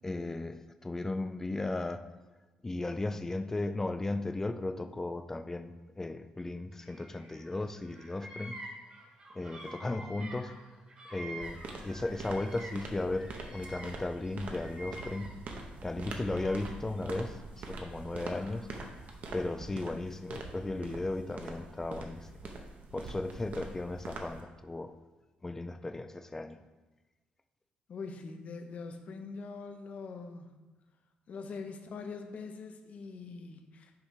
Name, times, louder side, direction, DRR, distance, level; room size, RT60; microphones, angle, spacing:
voice 1, 0.0-2.0 2.6-8.6 9.3-10.6 11.1-15.3 15.8-18.7 19.3-22.3 22.9-24.9 25.4-26.6, left 2 dB, 15° left, 9 dB, 0.3 m, -36 dB
Bird vocalization bird call bird song, 6.8-7.5 7.8-12.9 13.1-15.6 16.0-17.0 17.7-18.8, right 1 dB, 30° right, 1.2 m, -48 dB
sound 1, 11.4-24.4, right 3 dB, 50° right, 0.8 m, -44 dB
voice 2, 27.9-30.6 31.3-34.0, left 4 dB, 50° left, 6 dB, 0.6 m, -43 dB
5.7 x 3.3 x 5.6 m, 1.2 s
cardioid pair, 145°, 3 cm